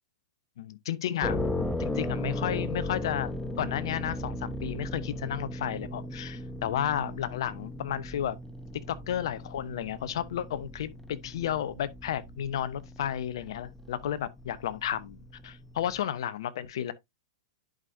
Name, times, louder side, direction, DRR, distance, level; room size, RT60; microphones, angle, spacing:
voice 1, 0.6-1.4 1.8-3.3 3.6-8.4 8.9-15.2 15.4-16.9, left 10 dB, 60° left, 0.8 m, -32 dB
sound 1, 1.2-16.0, left 1 dB, 10° left, 0.9 m, -37 dB
11.0 x 5.1 x 2.6 m
figure-of-eight pair, 105°, 3 cm